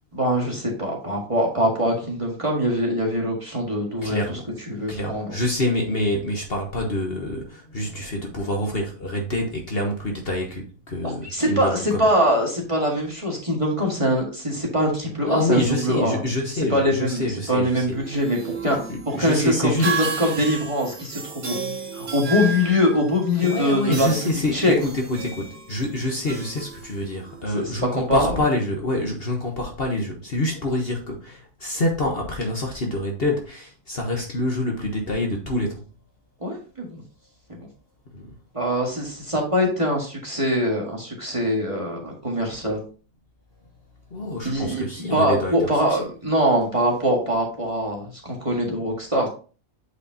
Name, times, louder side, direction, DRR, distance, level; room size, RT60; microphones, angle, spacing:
voice 1, 0.1-4.4 4.7-5.3 11.0-16.2 16.7-18.8 19.0-24.7 27.5-27.6 27.9-28.3 36.4-37.0 38.5-42.8 44.4-49.3, equal, 20° right, 1.7 m, -23 dB
voice 2, 4.0-4.5 4.9-12.1 15.2-18.0 18.9-20.1 23.4-35.8 38.1-38.3 44.1-46.1, left 1 dB, 45° left, 1.3 m, -26 dB
sound 1, 17.9-27.4, right 5 dB, 90° right, 2.0 m, -33 dB
8.3 x 5.0 x 2.8 m
omnidirectional pair, 1.5 m